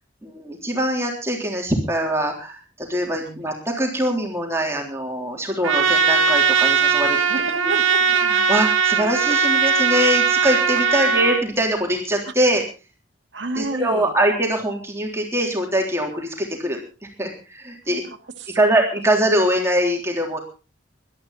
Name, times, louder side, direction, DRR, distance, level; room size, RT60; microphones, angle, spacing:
voice 1, 0.2-7.2 7.7-7.8 8.2-12.6 13.6-16.8 17.2-18.0 18.6-20.4, right 1 dB, 15° right, 1 dB, 3.4 m, -23 dB
Trumpet, 5.6-11.4, right 5 dB, 90° right, 2.1 m, -19 dB
voice 2, 7.3-8.2 9.3-9.4 12.3-12.4 13.3-14.1 17.9-18.6, right 2 dB, 65° right, 6 dB, 1.9 m, -31 dB
20.0 x 12.0 x 4.1 m, 0.33 s
head